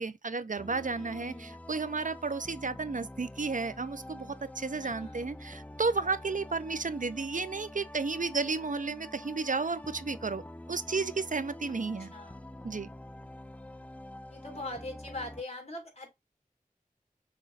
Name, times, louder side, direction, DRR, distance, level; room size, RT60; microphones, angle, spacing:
voice 1, 0.0-10.4 10.7-12.1 12.6-12.9, right 4 dB, 60° right, 0.5 m, -33 dB
sound 1, 0.6-15.4, left 1 dB, 10° left, 0.4 m, -47 dB
voice 2, 1.0-1.6 4.8-5.3 11.7-11.8 12.1-12.4 14.3-16.1, left 2 dB, 45° left, 2.4 m, -42 dB
6.5 x 3.0 x 2.6 m
wide cardioid pair, 45°, 15 cm